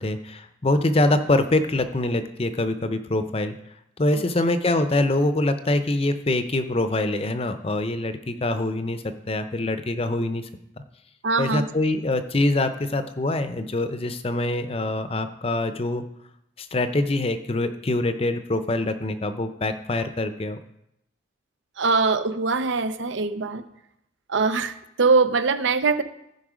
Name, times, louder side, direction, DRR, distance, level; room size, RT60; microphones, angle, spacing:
voice 1, 0.0-3.6 4.0-10.5 11.4-16.0 16.6-20.6, left 2 dB, 30° left, 10 dB, 0.6 m, -24 dB
voice 2, 11.2-11.7 21.8-23.6 24.3-26.0, right 4 dB, 75° right, 12 dB, 0.6 m, -22 dB
15.0 x 5.4 x 5.0 m, 0.81 s
head